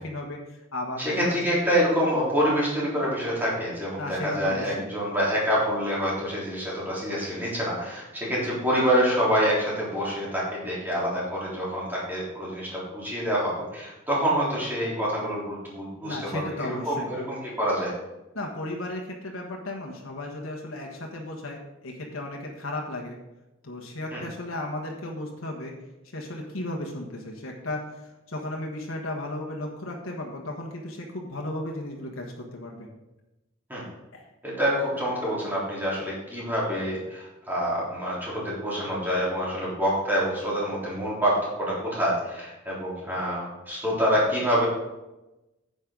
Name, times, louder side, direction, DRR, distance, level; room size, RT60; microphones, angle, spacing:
voice 1, 0.0-1.6 4.0-4.9 16.0-17.1 18.3-23.2 23.6-25.7 26.1-32.9 34.1-34.3, left 1 dB, 80° left, 0 dB, 1.5 m, -35 dB
voice 2, 1.0-17.9 24.1-24.2 33.7-33.8 34.4-44.7, equal, 10° right, -7 dB, 3.7 m, -26 dB
10.5 x 7.9 x 3.9 m, 1.0 s
head